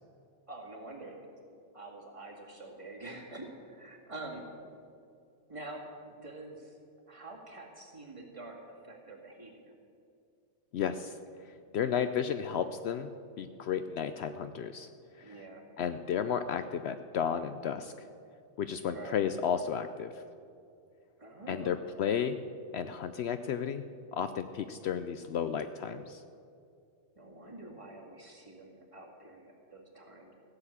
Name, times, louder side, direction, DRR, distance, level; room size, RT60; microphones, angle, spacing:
voice 1, 0.5-1.3 1.7-4.5 5.5-6.8 7.1-9.7 12.0-12.2 15.2-15.7 18.9-19.2 21.2-21.8 27.2-30.3, right 2 dB, 25° right, -2 dB, 2.2 m, -46 dB
voice 2, 10.7-11.1 11.4-13.1 13.4-14.9 15.2-15.4 15.8-18.1 18.6-20.1 21.5-22.4 22.7-23.8 24.1-26.2, left 8 dB, 65° left, 10 dB, 0.8 m, -33 dB
16.0 x 6.9 x 8.6 m, 2.5 s
omnidirectional pair, 1.3 m